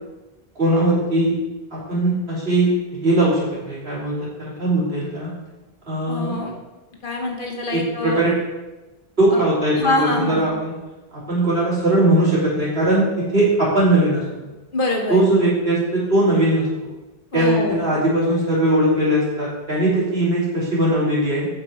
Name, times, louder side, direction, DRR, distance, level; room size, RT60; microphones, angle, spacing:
voice 1, 0.5-1.4 1.7-5.3 5.9-6.4 7.7-8.3 9.2-10.7 11.3-14.5 15.1-16.7 17.3-21.5, right 1 dB, 75° right, -8 dB, 3.1 m, -20 dB
voice 2, 6.1-6.5 7.0-8.2 9.3-9.4 9.8-10.5 14.7-15.2 17.3-17.9, left 2 dB, 55° left, 1 dB, 1.3 m, -24 dB
7.8 x 5.1 x 4.3 m, 1.1 s
omnidirectional pair, 1.0 m